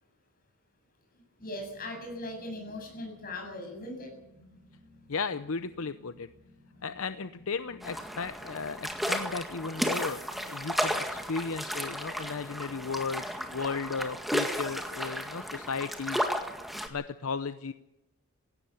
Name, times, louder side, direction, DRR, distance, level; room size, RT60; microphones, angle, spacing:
voice 1, 1.4-4.1, left 1 dB, 40° left, 3 dB, 7.6 m, -39 dB
sound 1, 1.4-13.6, left 2 dB, 60° right, 5.8 m, -58 dB
voice 2, 5.1-6.3 6.8-10.2 10.5-13.2 13.5-16.3 16.9-17.7, left 4 dB, 70° left, 12 dB, 0.7 m, -35 dB
sound 2, 7.8-16.9, equal, ahead, 1.9 m, -33 dB
18.5 x 16.5 x 8.6 m, 0.89 s
head